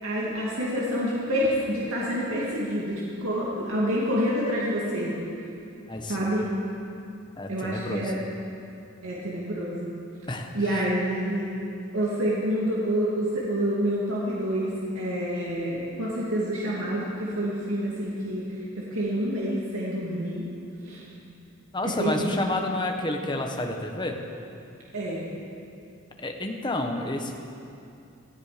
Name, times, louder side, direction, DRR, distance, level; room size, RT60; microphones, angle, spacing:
voice 1, 0.0-5.1 6.1-6.5 7.5-8.2 9.0-9.9 10.5-11.4 11.9-20.4 20.8-21.0 22.0-22.4 24.9-25.2, equal, 80° right, -6 dB, 2.4 m, -28 dB
voice 2, 5.9-6.3 7.4-8.2 10.3-10.9 21.7-24.2 26.2-27.3, left 2 dB, 20° left, 3 dB, 1.2 m, -30 dB
18.0 x 14.0 x 5.1 m, 2.7 s
head